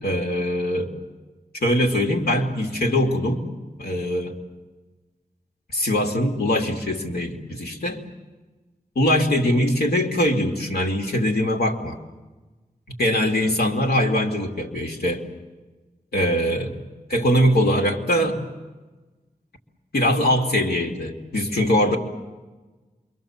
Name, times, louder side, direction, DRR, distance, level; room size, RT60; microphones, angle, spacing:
voice 1, 0.0-0.9 1.6-3.4 3.8-4.4 5.7-8.0 8.9-12.0 13.0-15.2 16.1-16.7 17.1-18.5 19.9-22.0, equal, 85° left, 1 dB, 2.9 m, -22 dB
28.0 x 23.5 x 7.4 m, 1.2 s
wide cardioid pair, 70°, 16 cm